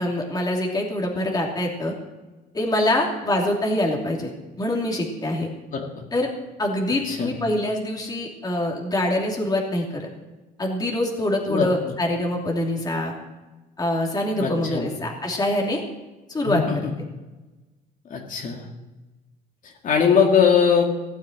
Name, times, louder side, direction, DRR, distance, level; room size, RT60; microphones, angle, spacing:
voice 1, 0.0-1.9 2.5-4.3 4.6-5.5 6.1-6.3 6.6-10.1 10.6-13.1 13.8-15.8 16.3-16.9, left 1 dB, 25° left, 0 dB, 2.8 m, -24 dB
voice 2, 11.5-11.9 14.4-14.9 16.5-16.9 18.1-18.6 19.8-20.8, left 6 dB, 50° left, 0 dB, 2.2 m, -21 dB
15.5 x 7.3 x 8.9 m, 1.2 s
cardioid pair, 110°, 17 cm